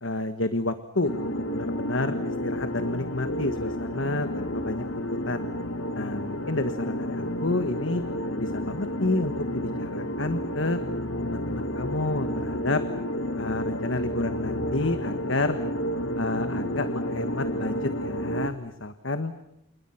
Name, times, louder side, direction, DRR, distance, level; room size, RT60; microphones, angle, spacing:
voice 1, 0.0-5.5 5.9-8.0 8.4-10.8 11.2-12.8 13.4-15.6 16.1-19.3, left 2 dB, 70° left, 9 dB, 1.5 m, -30 dB
sound 1, 1.0-18.5, equal, 85° left, 2.0 m, -31 dB
29.5 x 29.5 x 5.9 m, 0.79 s
head